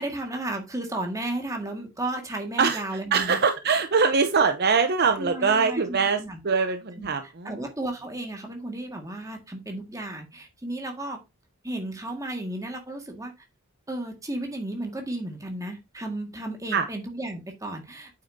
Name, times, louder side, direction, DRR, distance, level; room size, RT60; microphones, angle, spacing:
voice 1, 0.0-3.4 5.2-6.4 7.0-11.2 11.6-13.3 13.9-18.1, right 1 dB, 15° right, 1.8 m, -33 dB
voice 2, 3.1-7.6 16.7-16.9, right 5 dB, 45° right, 0.7 m, -23 dB
8.5 x 6.5 x 2.7 m
head